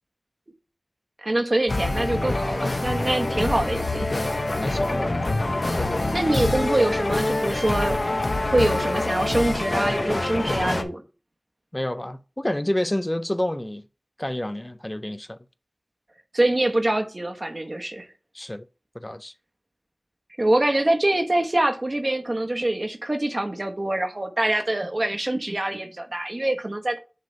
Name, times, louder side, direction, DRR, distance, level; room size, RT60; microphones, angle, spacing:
voice 1, 1.2-4.1 6.1-8.0 8.4-11.0 16.3-18.1 20.4-27.0, right 1 dB, 50° right, 1.1 m, -24 dB
sound 1, 1.7-10.8, left 2 dB, 75° left, 0.7 m, -25 dB
voice 2, 4.6-5.4 5.7-6.0 11.7-13.8 14.2-15.4 18.3-18.7 18.9-19.3, left 1 dB, 25° left, 0.4 m, -29 dB
6.6 x 3.3 x 5.2 m
wide cardioid pair, 50°, 0 cm